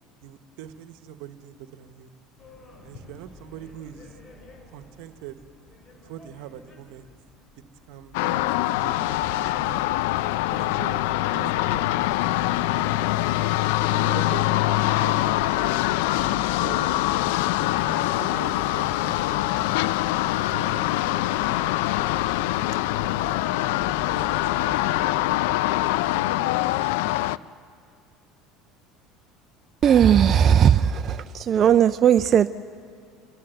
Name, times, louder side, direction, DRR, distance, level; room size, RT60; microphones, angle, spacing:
voice 1, 0.2-2.1 2.8-4.1 4.7-5.4 6.0-7.1 7.9-9.8 10.5-11.0 11.3-13.1 13.8-16.1 16.6-16.9 17.9-19.4 20.5-22.0 22.9-23.4 24.1-25.0 25.7-26.8, right 10 dB, 75° right, 10 dB, 1.1 m, -43 dB
sound 1, 2.4-19.3, left 2 dB, 30° left, 4.8 m, -52 dB
sound 2, 8.1-27.4, left 16 dB, 80° left, 0.4 m, -24 dB
sound 3, 9.0-26.1, right 6 dB, 10° right, 3.0 m, -46 dB
voice 2, 29.8-32.5, right 9 dB, 45° right, 11 dB, 0.5 m, -17 dB
29.5 x 12.5 x 7.9 m, 2.4 s
supercardioid pair, 105°, 0 cm